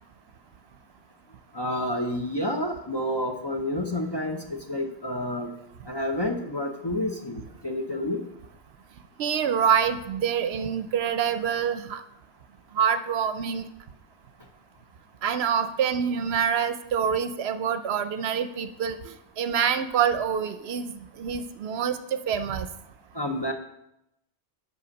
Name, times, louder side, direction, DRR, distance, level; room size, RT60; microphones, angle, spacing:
voice 1, 1.5-5.5 5.9-8.2 23.1-23.5, left 1 dB, 30° left, 2 dB, 0.6 m, -29 dB
voice 2, 9.2-12.0 12.7-13.6 15.2-22.7, right 7 dB, 70° right, 11 dB, 0.8 m, -26 dB
8.4 x 5.5 x 5.2 m, 0.83 s
omnidirectional pair, 1.1 m